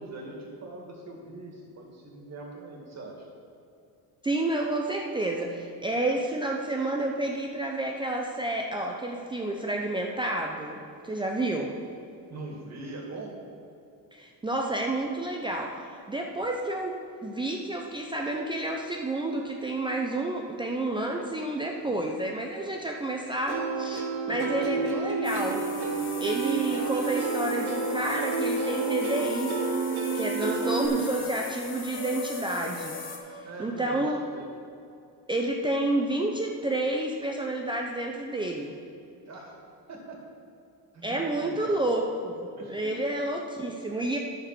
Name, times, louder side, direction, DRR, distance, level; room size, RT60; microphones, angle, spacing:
voice 1, 0.0-3.3 12.3-13.3 24.1-24.8 30.9-31.2 33.4-34.5 39.3-39.6 39.9-40.2 40.9-41.8 42.6-42.9, right 2 dB, 40° right, 0 dB, 2.3 m, -42 dB
voice 2, 4.2-11.7 14.1-25.7 26.2-29.6 30.1-33.0 33.3-34.2 35.3-38.7 41.0-44.2, right 2 dB, 10° right, 0 dB, 0.6 m, -30 dB
Plucked string instrument, 23.5-30.9, right 4 dB, 65° right, 1.6 m, -30 dB
sound 1, 25.2-33.2, left 3 dB, 30° left, 1.3 m, -38 dB
10.5 x 6.7 x 6.0 m, 2.6 s
cardioid pair, 140°, 42 cm